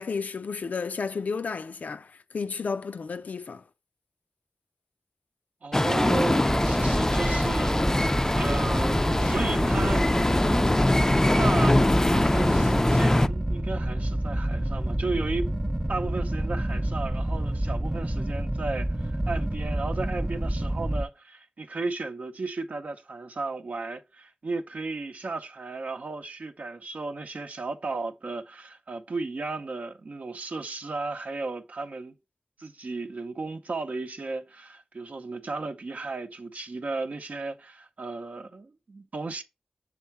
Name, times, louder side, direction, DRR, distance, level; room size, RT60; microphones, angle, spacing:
voice 1, 0.0-3.6, left 5 dB, 85° left, 0.4 m, -32 dB
voice 2, 5.6-8.1 8.3-10.1 11.4-11.8 12.1-15.5 15.9-32.1 32.6-39.4, right 3 dB, 70° right, 0.6 m, -34 dB
sound 1, 5.7-13.3, left 1 dB, 20° left, 0.3 m, -23 dB
sound 2, 6.5-21.0, right 1 dB, 20° right, 0.7 m, -28 dB
6.6 x 3.6 x 4.4 m
cardioid pair, 45°, 3 cm